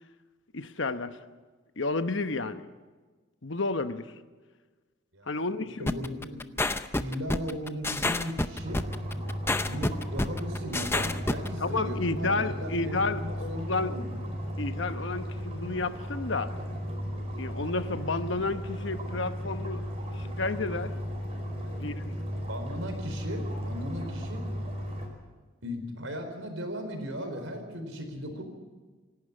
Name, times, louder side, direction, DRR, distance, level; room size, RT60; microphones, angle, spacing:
voice 1, 0.5-1.2 1.8-2.6 3.4-4.1 5.3-6.0 11.6-13.9 14.6-16.5 17.4-19.9 20.1-20.9 21.8-22.2, left 3 dB, 65° left, 10 dB, 1.0 m, -31 dB
voice 2, 5.1-6.4 7.0-8.8 9.6-14.1 21.6-21.8 22.2-24.4 25.6-28.4, equal, 75° right, 6 dB, 4.3 m, -37 dB
sound 1, 5.9-11.5, left 2 dB, 10° left, 0.6 m, -28 dB
sound 2, 8.6-25.1, equal, 30° right, 4.7 m, -35 dB
26.5 x 12.0 x 9.6 m, 1.3 s
head